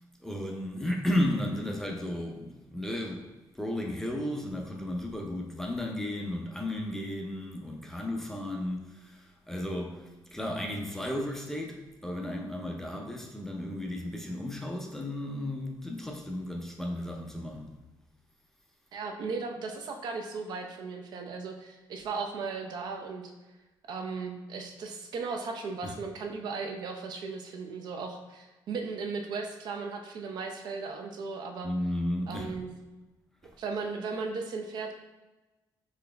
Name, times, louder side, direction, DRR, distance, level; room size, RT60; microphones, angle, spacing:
voice 1, 0.2-3.3 3.5-17.7 25.8-25.9 31.6-32.5 33.4-33.5, left 1 dB, 5° left, 1 dB, 0.4 m, -34 dB
voice 2, 18.9-23.3 23.9-31.7 32.3-32.7 33.6-34.9, right 4 dB, 55° right, 3 dB, 0.6 m, -36 dB
4.1 x 3.9 x 3.3 m, 1.1 s
cardioid pair, 165°, 8 cm